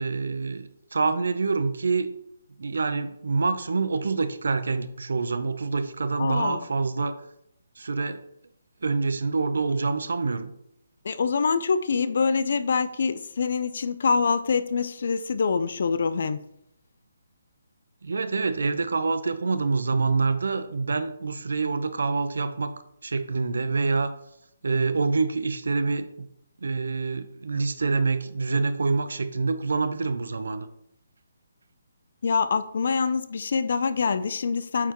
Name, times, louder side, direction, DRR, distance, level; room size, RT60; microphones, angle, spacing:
voice 1, 0.0-2.1 2.6-7.1 7.8-8.2 8.8-10.5 18.0-22.7 23.0-24.1 24.6-26.3 26.6-30.7, right 4 dB, 75° right, 0.8 m, -26 dB
voice 2, 6.2-6.7 11.0-16.4 32.2-34.9, left 5 dB, 60° left, 0.5 m, -25 dB
8.5 x 5.6 x 3.1 m
hypercardioid pair, 160°, 0 cm